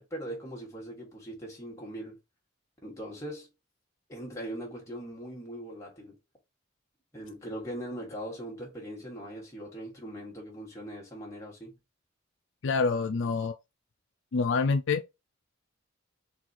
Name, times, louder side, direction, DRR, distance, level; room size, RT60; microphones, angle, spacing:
voice 1, 0.0-2.2 2.8-3.5 4.1-6.2 7.1-11.8, right 1 dB, 15° left, 1.9 m, -40 dB
voice 2, 12.6-13.5 14.3-15.0, left 4 dB, 65° left, 0.4 m, -26 dB
4.3 x 2.5 x 4.4 m
head